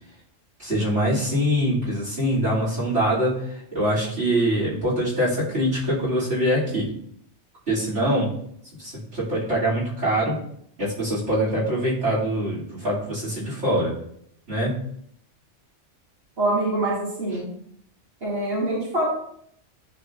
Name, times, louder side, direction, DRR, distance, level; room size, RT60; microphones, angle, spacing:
voice 1, 0.6-6.9 7.7-8.3 8.8-10.4 10.8-13.9 14.5-14.8, equal, 70° right, -8 dB, 3.3 m, -24 dB
voice 2, 16.4-17.5 18.2-19.1, right 1 dB, 55° right, -9 dB, 3.0 m, -24 dB
11.0 x 4.5 x 2.6 m, 0.67 s
omnidirectional pair, 1.2 m